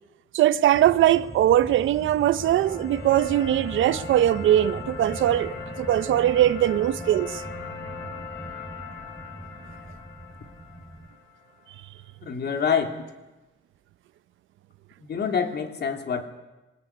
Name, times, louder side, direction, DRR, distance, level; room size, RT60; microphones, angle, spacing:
voice 1, 0.3-7.4, right 12 dB, 80° right, 1.0 m, -21 dB
sound 1, 0.7-11.1, right 1 dB, ahead, 3.0 m, -41 dB
sound 2, 1.7-11.8, left 5 dB, 80° left, 4.7 m, -40 dB
voice 2, 12.2-13.0 15.1-16.2, left 6 dB, 55° left, 3.0 m, -26 dB
22.0 x 17.5 x 9.7 m
cardioid pair, 90°, 20 cm